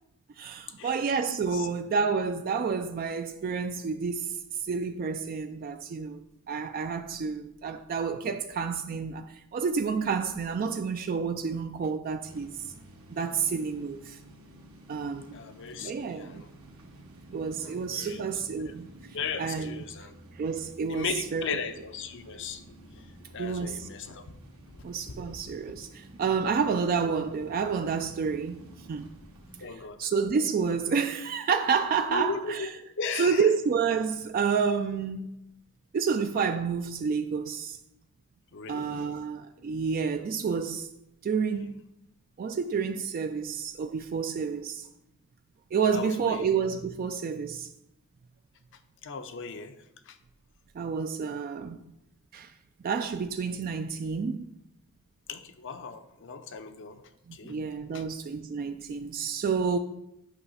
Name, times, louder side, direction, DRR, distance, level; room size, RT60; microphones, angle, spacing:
voice 1, 0.4-6.2 6.5-12.7 13.1-14.2 14.9-15.4 15.8-16.4 17.3-18.9 19.4-19.8 20.4-21.6 23.4-23.9 24.8-29.0 29.7-32.7 33.2-35.3 35.9-37.8 38.7-40.9 41.2-41.8 42.4-44.9 45.7-47.7 50.7-51.9 52.3-52.5 52.8-54.5 57.3-59.8, right 5 dB, 45° right, 0.3 m, -29 dB
sound 1, 12.2-29.7, right 1 dB, 90° right, 1.3 m, -51 dB
voice 2, 15.3-16.5 17.6-18.3 19.1-20.1 20.9-22.6 22.9-23.1 23.3-24.2 24.7-24.8 25.1-25.2 29.6-30.0 32.1-32.7 33.0-33.5 38.5-38.9 45.9-46.5 49.0-49.8 50.1-50.2 55.3-57.0 57.3-57.6 57.9-58.0, left 5 dB, 60° left, 0.6 m, -36 dB
8.2 x 3.2 x 5.5 m
head